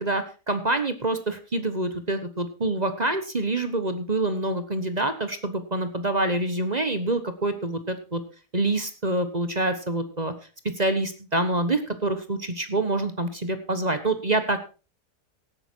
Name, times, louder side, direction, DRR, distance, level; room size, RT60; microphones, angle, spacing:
voice 1, 0.0-8.2 8.5-10.3 10.8-14.6, right 2 dB, 30° right, 10 dB, 1.1 m, -26 dB
16.5 x 9.1 x 4.5 m, 0.34 s
omnidirectional pair, 1.7 m